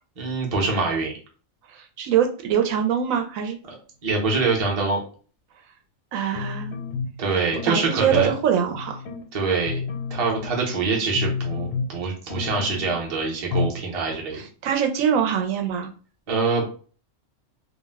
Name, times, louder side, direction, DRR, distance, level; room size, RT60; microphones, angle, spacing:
voice 1, 0.2-1.1 3.7-3.8 4.0-5.0 7.2-8.3 9.3-9.8 10.1-14.4 16.3-16.7, right 4 dB, 35° right, -1 dB, 0.6 m, -24 dB
voice 2, 1.7-3.6 6.1-6.8 7.7-9.0 14.3-15.9, right 8 dB, 85° right, 4 dB, 1.0 m, -23 dB
sound 1, 6.3-7.2 7.5-8.4 8.7-9.2 9.7-10.8 11.1-12.0 12.3-13.0 13.5-13.8 14.1-14.2, left 5 dB, 85° left, 1.0 m, -30 dB
2.5 x 2.1 x 3.4 m, 0.40 s
omnidirectional pair, 1.4 m